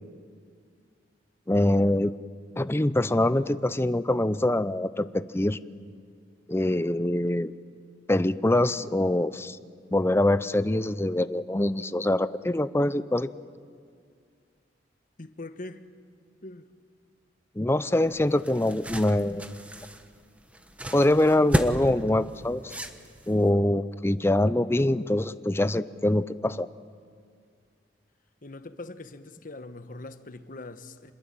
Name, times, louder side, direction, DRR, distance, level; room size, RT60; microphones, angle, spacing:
voice 1, 1.5-2.1 2.6-5.6 6.5-7.5 8.1-9.6 9.9-13.3 17.6-19.5 20.9-22.7 23.3-26.7, left 1 dB, 15° left, 0.6 m, -24 dB
voice 2, 15.2-15.8 16.4-16.7 28.4-31.1, left 2 dB, 50° left, 1.2 m, -42 dB
sound 1, 18.0-23.5, equal, 10° right, 1.3 m, -33 dB
27.0 x 21.0 x 9.1 m
head